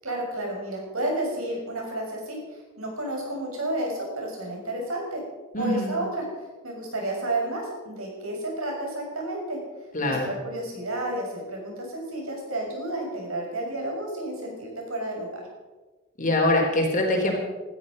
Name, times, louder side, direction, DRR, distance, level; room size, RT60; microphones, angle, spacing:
voice 1, 0.0-2.4 2.8-5.2 5.6-6.2 6.6-9.6 10.0-15.3, right 1 dB, 80° right, 0 dB, 6.6 m, -31 dB
voice 2, 5.5-5.9 9.9-10.3 16.2-17.3, left 1 dB, 40° left, 1 dB, 3.9 m, -23 dB
19.5 x 13.5 x 5.4 m, 1.2 s
head